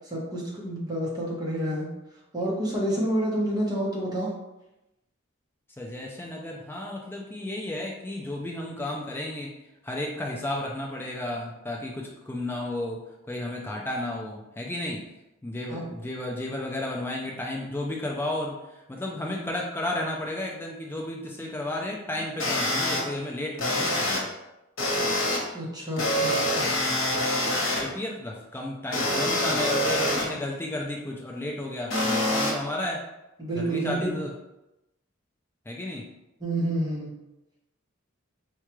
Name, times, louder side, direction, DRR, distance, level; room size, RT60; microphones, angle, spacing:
voice 1, 0.1-1.9 2.3-4.3 15.7-15.9 25.5-26.7 33.4-34.1 36.4-37.1, right 1 dB, 20° right, -5 dB, 0.9 m, -29 dB
voice 2, 5.8-9.5 9.8-13.0 13.3-15.1 15.4-24.3 27.8-33.0 33.6-34.3 35.7-36.1, left 1 dB, 10° left, -1 dB, 0.3 m, -33 dB
sound 1, 22.4-23.0 23.6-24.2 24.8-25.4 26.0-27.8 28.9-30.2 31.9-32.5, left 1 dB, 75° left, 1.0 m, -25 dB
4.5 x 2.3 x 3.0 m, 0.94 s
head